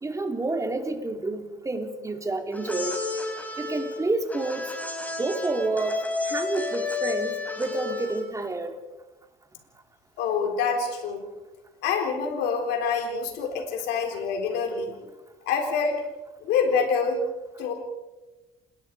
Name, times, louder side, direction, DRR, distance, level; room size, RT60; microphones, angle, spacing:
voice 1, 0.0-3.0 3.6-4.7 5.2-6.0 6.2-8.8, right 2 dB, 20° right, 5 dB, 3.0 m, -29 dB
sound 1, 2.5-8.4, left 3 dB, 10° left, 3.9 m, -32 dB
voice 2, 10.2-11.2 11.8-14.9 15.5-16.0 16.4-17.2 17.6-17.7, left 5 dB, 90° left, 3 dB, 3.9 m, -26 dB
28.0 x 20.5 x 4.8 m, 1.1 s
cardioid pair, 110°, 17 cm